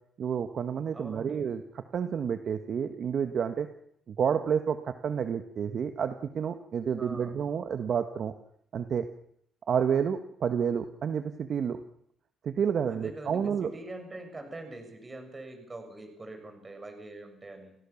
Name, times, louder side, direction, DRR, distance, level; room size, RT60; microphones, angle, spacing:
voice 1, 0.2-1.6 1.9-3.7 4.1-8.3 8.7-9.1 9.7-11.8 12.4-13.7, right 7 dB, 55° right, 9 dB, 1.5 m, -29 dB
voice 2, 0.9-1.5 7.0-7.4 12.9-17.8, right 2 dB, 25° right, 6 dB, 7.1 m, -44 dB
29.0 x 17.0 x 7.2 m, 0.70 s
cardioid pair, 90°, 0 cm